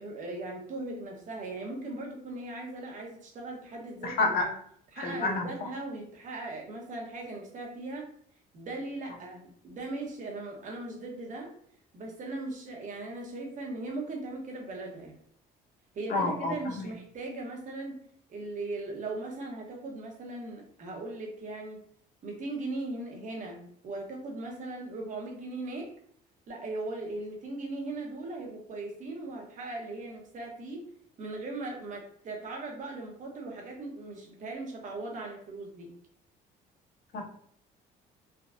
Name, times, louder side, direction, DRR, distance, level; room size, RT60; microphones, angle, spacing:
voice 1, 0.0-4.5 4.9-8.1 8.5-11.5 11.9-15.1 15.9-18.0 18.3-21.8 22.2-25.9 26.5-30.8 31.2-35.9, right 2 dB, 50° right, 0 dB, 0.9 m, -38 dB
voice 2, 4.0-4.5 5.0-5.5 16.1-16.9 37.1-37.2, left 3 dB, 65° left, 3 dB, 0.7 m, -29 dB
3.4 x 2.3 x 2.4 m, 0.63 s
cardioid pair, 110°, 17 cm